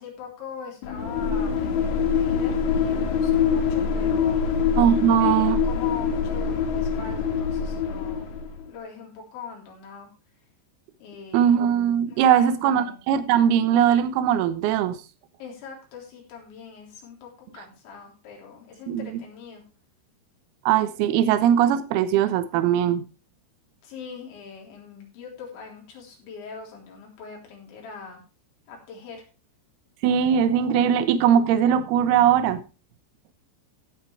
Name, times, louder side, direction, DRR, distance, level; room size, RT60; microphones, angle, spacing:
voice 1, 0.0-4.5 5.2-8.3 8.7-10.1 11.0-11.6 12.0-13.0 15.4-19.6 23.8-28.2 28.7-29.3, left 6 dB, 85° left, 5.9 m, -41 dB
sound 1, 0.8-8.6, left 6 dB, 65° left, 1.9 m, -24 dB
voice 2, 4.8-5.6 11.3-15.0 18.9-19.1 20.7-23.1 30.0-32.6, right 9 dB, 70° right, 2.7 m, -20 dB
16.5 x 8.1 x 3.3 m
omnidirectional pair, 5.1 m